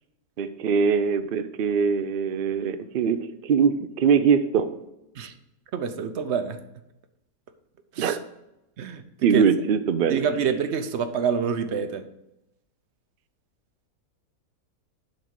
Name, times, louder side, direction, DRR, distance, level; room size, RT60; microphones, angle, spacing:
voice 1, 0.4-4.7 8.0-8.2 9.2-10.2, right 6 dB, 90° right, 10 dB, 0.4 m, -22 dB
voice 2, 5.7-6.6 7.9-8.2 8.8-9.4 10.1-12.1, right 7 dB, 55° right, 9 dB, 0.8 m, -27 dB
11.5 x 4.0 x 4.7 m, 0.88 s
omnidirectional pair, 1.6 m